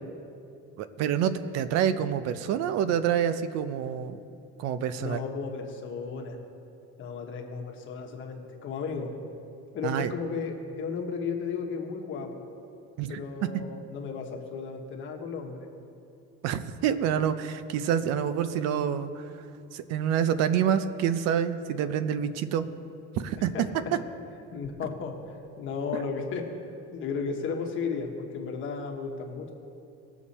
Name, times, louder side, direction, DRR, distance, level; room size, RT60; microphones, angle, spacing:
voice 1, 0.8-4.2 4.6-5.2 9.8-10.1 13.0-13.2 16.4-19.4 19.7-22.7 23.2-23.7 25.9-26.0, right 9 dB, 60° right, 12 dB, 0.6 m, -27 dB
voice 2, 5.0-6.4 7.0-9.1 9.7-12.4 13.1-15.7 17.0-17.3 23.5-23.7 24.5-26.5 26.9-29.5, left 5 dB, 40° left, 1 dB, 1.2 m, -34 dB
19.5 x 7.1 x 4.2 m, 2.6 s
cardioid pair, 175°, 29 cm